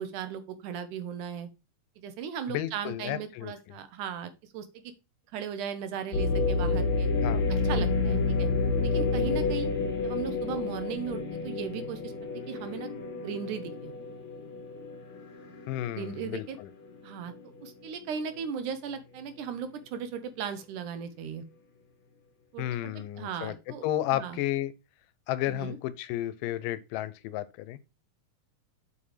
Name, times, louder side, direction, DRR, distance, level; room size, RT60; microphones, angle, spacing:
voice 1, 0.0-1.5 2.0-4.8 5.3-7.1 7.6-8.5 8.8-9.7 10.0-12.1 12.5-12.9 13.2-13.9 16.0-16.6 17.0-17.3 17.6-21.4 22.5-22.9 23.2-23.9 24.1-24.4 25.5-25.8, right 7 dB, 75° right, 2.2 m, -37 dB
voice 2, 2.5-3.8 7.2-7.5 15.7-16.7 22.6-23.6 23.8-24.7 25.3-27.8, left 13 dB, 85° left, 2.3 m, -32 dB
sound 1, 6.1-16.1 16.6-16.7 17.3-17.7, left 3 dB, 60° left, 1.3 m, -29 dB
7.4 x 4.9 x 3.2 m
omnidirectional pair, 3.8 m